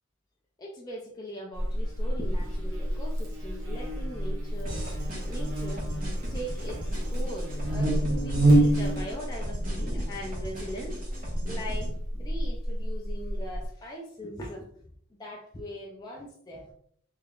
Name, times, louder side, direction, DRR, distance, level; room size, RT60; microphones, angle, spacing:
voice 1, 0.6-4.8 5.2-5.9 6.3-14.7 15.2-16.7, equal, 20° left, -2 dB, 0.4 m, -40 dB
Buzz, 1.5-13.7, right 1 dB, 70° right, 0.9 m, -28 dB
sound 1, 4.6-11.9, right 1 dB, 45° right, 1.1 m, -39 dB
3.4 x 3.4 x 2.3 m, 0.64 s
head